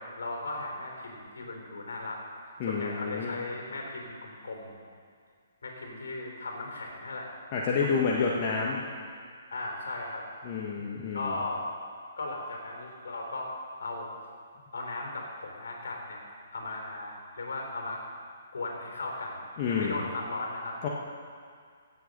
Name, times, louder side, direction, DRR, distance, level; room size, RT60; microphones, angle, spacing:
voice 1, 0.0-2.2 2.4-4.8 5.6-7.3 7.7-8.4 9.5-10.3 11.1-11.7 12.2-13.5 13.8-14.2 14.7-16.2 16.5-18.0 18.5-20.8, left 2 dB, 70° left, 1 dB, 3.5 m, -37 dB
voice 2, 2.6-3.3 7.5-8.8 10.4-11.4 19.6-20.0 20.8-20.9, left 5 dB, 35° left, -3 dB, 1.4 m, -29 dB
16.5 x 8.0 x 5.3 m, 2.1 s
hypercardioid pair, 135°, 0 cm